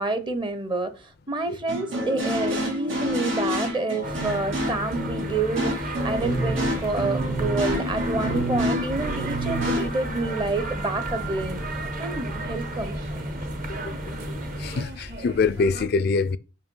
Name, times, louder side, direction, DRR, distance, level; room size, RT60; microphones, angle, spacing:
voice 1, 0.0-11.6 12.0-13.0, right 2 dB, 25° right, 0.8 m, -28 dB
sound 1, 1.7-9.9, equal, 85° right, 2.3 m, -28 dB
sound 2, 4.0-14.9, right 1 dB, 45° right, 1.1 m, -33 dB
sound 3, 6.0-15.8, equal, 60° right, 2.7 m, -39 dB
voice 2, 14.1-16.4, left 4 dB, 55° left, 0.4 m, -25 dB
5.5 x 5.2 x 5.4 m
head